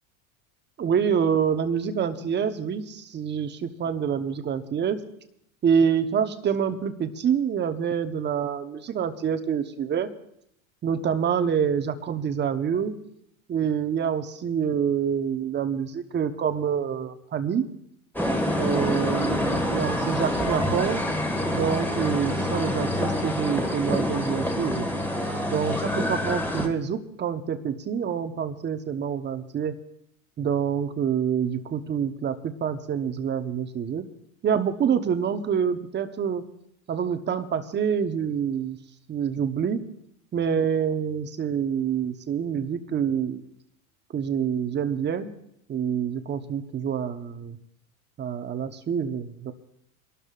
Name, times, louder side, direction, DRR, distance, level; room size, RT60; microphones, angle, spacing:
voice 1, 0.8-5.0 5.6-10.1 10.8-13.0 13.5-17.6 18.6-21.0 21.5-24.9 25.5-29.8 30.4-34.0 34.4-36.4 36.9-38.8 39.1-39.8 40.3-43.4 44.1-45.3 45.7-47.6 48.2-49.5, right 7 dB, 25° right, 8 dB, 1.1 m, -26 dB
sound 1, 18.2-26.7, left 1 dB, 5° left, 1.8 m, -26 dB
27.5 x 12.5 x 2.5 m, 0.74 s
hypercardioid pair, 105°, 41 cm